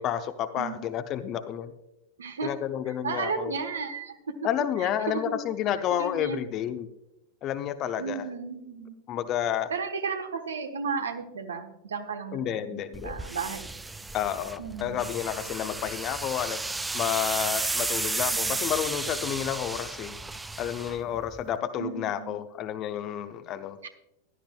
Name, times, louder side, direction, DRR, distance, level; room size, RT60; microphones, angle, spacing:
voice 1, 0.0-1.7 2.4-3.5 4.4-6.9 7.4-8.3 9.1-9.7 12.3-13.1 14.1-16.6 16.9-20.1 20.6-23.8, left 10 dB, 35° left, 10 dB, 0.8 m, -30 dB
voice 2, 0.5-0.9 2.2-2.5 3.0-4.2 4.8-5.4 5.9-6.4 8.0-8.9 9.7-13.7 14.6-15.1 18.3-18.6 21.8-22.4 23.8-23.9, right 5 dB, 70° right, 7 dB, 1.2 m, -34 dB
sound 1, 12.9-21.6, right 2 dB, 10° right, 0.4 m, -33 dB
16.0 x 12.0 x 2.3 m, 0.87 s
figure-of-eight pair, 90°, 0 cm